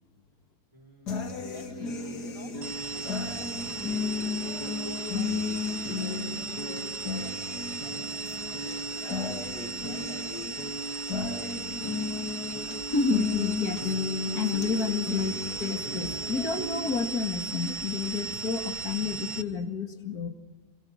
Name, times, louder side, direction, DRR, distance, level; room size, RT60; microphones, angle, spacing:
voice 1, 0.7-3.9 4.3-6.4 6.8-8.2 8.5-10.3 10.6-11.4, equal, 20° right, 3 dB, 4.7 m, -49 dB
sound 1, 1.1-17.1, left 4 dB, 90° left, 2.8 m, -34 dB
sound 2, 2.6-19.4, right 4 dB, 80° right, 2.2 m, -37 dB
voice 2, 12.9-20.3, left 4 dB, 70° left, 6 dB, 2.7 m, -30 dB
27.5 x 26.0 x 6.5 m, 1.1 s
omnidirectional pair, 1.7 m